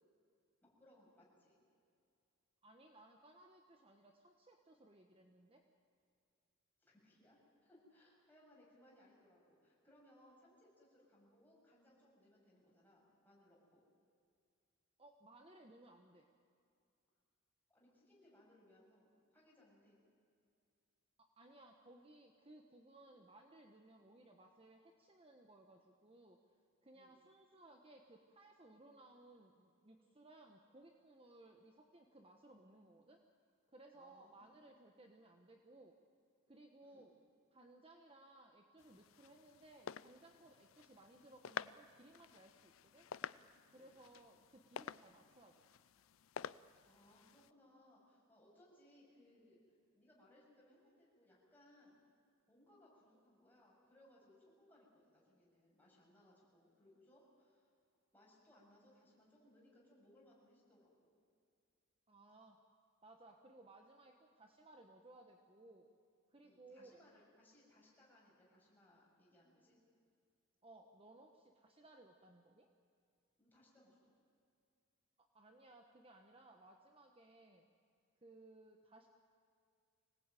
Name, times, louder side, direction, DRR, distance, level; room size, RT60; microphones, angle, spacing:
voice 1, 0.6-1.6 6.8-13.8 17.7-20.1 26.9-27.2 33.9-34.5 36.8-37.1 43.7-44.0 46.8-52.0 52.5-57.7 58.1-61.1 66.4-69.8 73.4-74.1, left 1 dB, 10° left, -5 dB, 7.2 m, -68 dB
voice 2, 2.6-5.6 15.0-16.3 21.2-26.4 26.8-33.2 33.7-35.9 36.5-37.1 37.5-43.1 43.7-45.6 62.1-62.6 63.0-65.9 66.3-67.0 70.6-72.7 75.2-77.7 78.2-79.1, right 2 dB, 25° right, 3 dB, 1.2 m, -62 dB
sound 1, 38.8-47.5, left 7 dB, 70° left, 0.5 m, -51 dB
25.0 x 19.0 x 9.2 m, 2.5 s
head